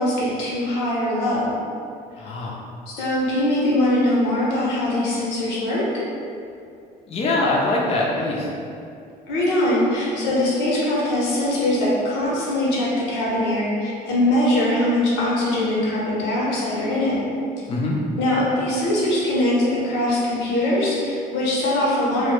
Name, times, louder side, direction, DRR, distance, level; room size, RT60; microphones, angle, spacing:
voice 1, 0.0-1.5 2.9-5.8 9.3-17.2 18.2-22.3, left 1 dB, 90° left, -6 dB, 0.7 m, -22 dB
voice 2, 2.2-2.6 7.1-8.5 17.7-18.0, left 2 dB, 35° left, -4 dB, 0.4 m, -23 dB
2.1 x 2.0 x 3.0 m, 2.5 s
cardioid pair, 110°, 17 cm